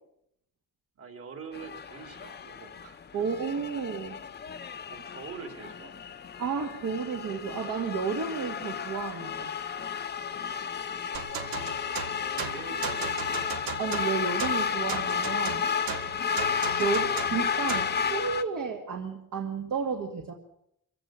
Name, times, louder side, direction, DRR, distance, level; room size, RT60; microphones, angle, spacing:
voice 1, 1.0-3.1 4.9-6.0 10.3-10.6 11.1-11.7 12.2-13.3, right 5 dB, 45° right, 5 dB, 3.4 m, -45 dB
sound 1, 1.5-18.4, left 6 dB, 30° left, 0.8 m, -32 dB
voice 2, 3.1-4.2 6.4-9.5 13.8-15.7 16.8-20.3, right 5 dB, 60° right, 1 dB, 2.2 m, -32 dB
sound 2, 11.1-18.0, right 7 dB, 85° right, 1.9 m, -37 dB
25.0 x 16.0 x 6.5 m, 0.76 s
cardioid pair, 160°, 34 cm